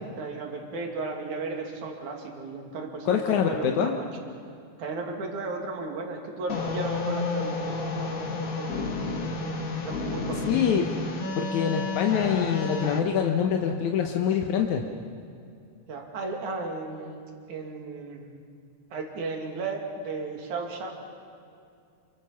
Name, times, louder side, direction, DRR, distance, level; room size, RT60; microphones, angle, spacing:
voice 1, 0.2-4.1 4.8-8.3 8.6-9.5 9.8-10.7 15.9-17.2 17.5-18.3 18.9-20.9, right 3 dB, 80° right, 2 dB, 3.8 m, -35 dB
voice 2, 3.1-3.9 10.5-10.9 11.4-14.8, left 8 dB, 75° left, 3 dB, 2.5 m, -25 dB
sound 1, 6.5-13.0, left 3 dB, 35° left, 1.5 m, -31 dB
28.5 x 24.0 x 5.8 m, 2.5 s
omnidirectional pair, 3.4 m